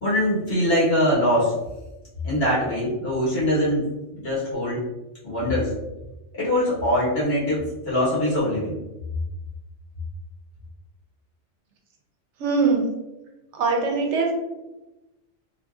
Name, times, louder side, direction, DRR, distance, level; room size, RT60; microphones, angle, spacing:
voice 1, 0.0-1.5 2.2-3.8 4.1-4.8 5.2-5.7 6.3-8.7, left 1 dB, 60° left, -8 dB, 1.4 m, -22 dB
voice 2, 12.4-12.9 13.5-14.3, right 4 dB, 80° right, 1 dB, 0.9 m, -22 dB
2.8 x 2.5 x 2.3 m, 1.0 s
omnidirectional pair, 1.2 m